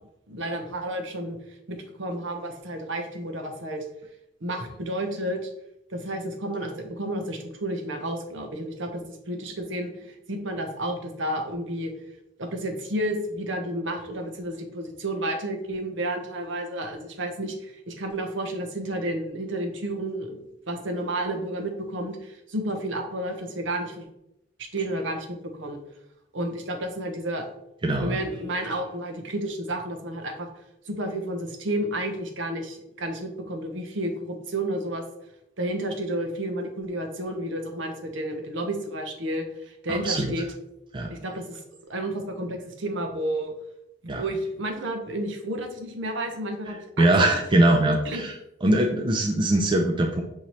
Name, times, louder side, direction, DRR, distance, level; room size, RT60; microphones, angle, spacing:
voice 1, 0.3-1.4 1.7-3.8 4.4-5.5 5.9-11.9 12.4-20.4 20.7-24.1 24.6-25.8 26.3-27.5 28.0-30.5 30.9-35.0 35.6-40.5 41.1-41.6 41.9-43.5 44.0-47.3 48.0-48.2, right 1 dB, 70° right, 4 dB, 0.8 m, -31 dB
voice 2, 27.8-28.2 39.9-40.3 40.9-41.1 44.1-44.2 47.0-48.3 48.6-50.2, right 1 dB, 25° right, 2 dB, 0.4 m, -22 dB
6.3 x 2.8 x 3.0 m, 0.84 s
head